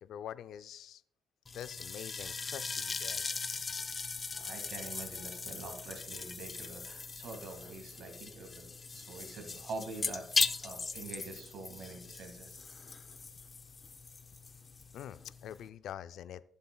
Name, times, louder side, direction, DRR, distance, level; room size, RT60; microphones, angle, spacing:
voice 1, 0.0-1.0 1.5-3.7 14.9-16.4, left 10 dB, 75° left, 14 dB, 0.4 m, -45 dB
sound 1, 1.5-15.7, left 4 dB, 35° left, 0.7 m, -39 dB
voice 2, 4.3-12.6, right 3 dB, 70° right, 4 dB, 1.9 m, -45 dB
15.5 x 7.1 x 2.3 m, 0.71 s
cardioid pair, 90°, 0 cm